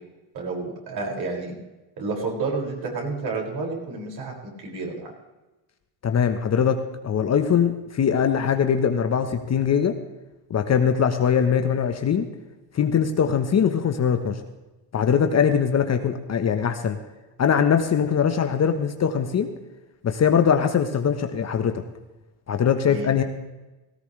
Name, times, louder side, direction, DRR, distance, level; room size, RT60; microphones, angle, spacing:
voice 1, 0.3-1.6 2.0-5.1 22.9-23.1, right 3 dB, 45° right, -2 dB, 6.2 m, -30 dB
voice 2, 6.0-10.0 10.5-12.3 12.7-14.4 14.9-17.0 17.4-19.5 20.0-21.8 22.5-23.2, left 7 dB, 30° left, 7 dB, 1.2 m, -21 dB
18.0 x 16.0 x 3.4 m, 1.1 s
supercardioid pair, 100°, 50 cm